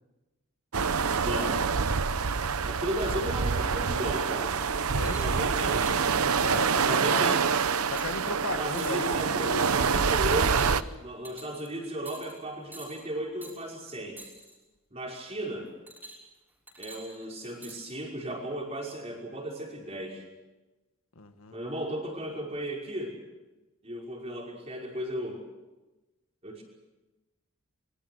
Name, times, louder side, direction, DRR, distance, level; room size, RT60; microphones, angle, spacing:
sound 1, 0.7-10.8, right 5 dB, 90° right, 0.9 m, -26 dB
voice 1, 1.2-1.6 2.6-4.6 4.9-6.1 6.8-7.5 8.6-14.2 14.9-15.7 16.8-20.2 21.5-23.2 23.8-25.4 26.4-26.6, right 1 dB, 30° right, -1 dB, 5.6 m, -35 dB
voice 2, 4.9-5.7 6.2-7.4 7.9-9.8 21.1-21.6, left 3 dB, 80° left, 8 dB, 1.6 m, -36 dB
sound 2, 5.0-5.3 5.7-6.0 6.4-6.8 7.2-7.5 8.0-8.2 8.7-9.2 9.6-9.9 10.4-10.9 11.2-11.7 12.0-12.4 12.7-13.0 13.4-13.6 14.2-14.5 15.9-16.4 16.7-17.8 18.6-18.7, right 2 dB, 10° right, 5.9 m, -47 dB
25.0 x 24.0 x 6.3 m, 1.1 s
head